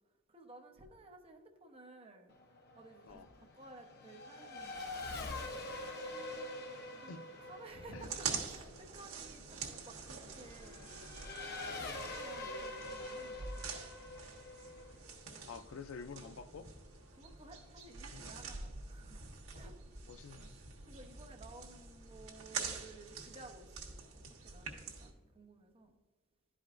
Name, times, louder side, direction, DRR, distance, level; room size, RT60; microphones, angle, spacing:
voice 1, 0.3-2.3 2.7-6.2 6.9-10.9 11.4-14.1 15.3-15.5 17.1-19.8 20.8-25.9, right 2 dB, 30° right, 3 dB, 0.8 m, -56 dB
Race car auto racing / Accelerating revving vroom, 2.3-16.4, left 2 dB, 50° left, 0.8 m, -46 dB
sound 1, 5.2-13.3, right 1 dB, 60° right, 1.1 m, -55 dB
sound 2, 8.0-25.1, right 5 dB, 85° right, 1.3 m, -46 dB
voice 2, 15.4-16.7 18.1-18.3 20.1-20.6, left 5 dB, 70° left, 10 dB, 0.4 m, -48 dB
11.5 x 5.0 x 2.5 m, 1.4 s
head